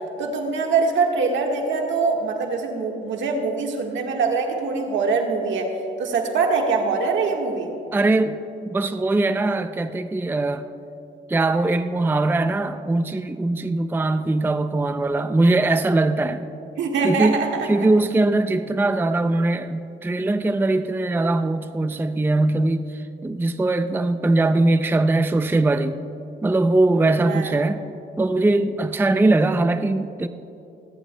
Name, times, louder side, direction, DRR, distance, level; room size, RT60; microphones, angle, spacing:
voice 1, 0.2-5.7 6.0-7.7 16.8-17.7 27.3-27.5, right 4 dB, 70° right, 2 dB, 1.5 m, -23 dB
voice 2, 7.9-8.4 8.7-10.7 11.3-16.5 17.0-26.0 26.4-27.8 28.2-30.3, right 2 dB, 10° right, 10 dB, 0.4 m, -21 dB
29.0 x 12.0 x 2.2 m, 2.9 s
cardioid pair, 90°, 20 cm